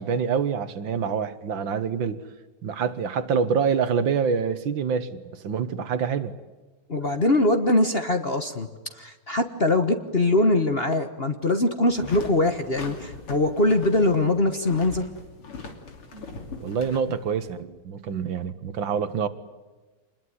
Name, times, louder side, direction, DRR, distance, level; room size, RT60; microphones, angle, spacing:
voice 1, 0.0-2.2 2.6-6.3 16.1-16.3 16.6-19.3, right 6 dB, 65° right, 13 dB, 1.8 m, -26 dB
voice 2, 6.9-8.7 8.9-15.1, left 2 dB, 30° left, 7 dB, 1.3 m, -22 dB
sound 1, 11.9-17.6, left 4 dB, 85° left, 3.7 m, -40 dB
26.5 x 21.0 x 9.6 m, 1.3 s
omnidirectional pair, 2.4 m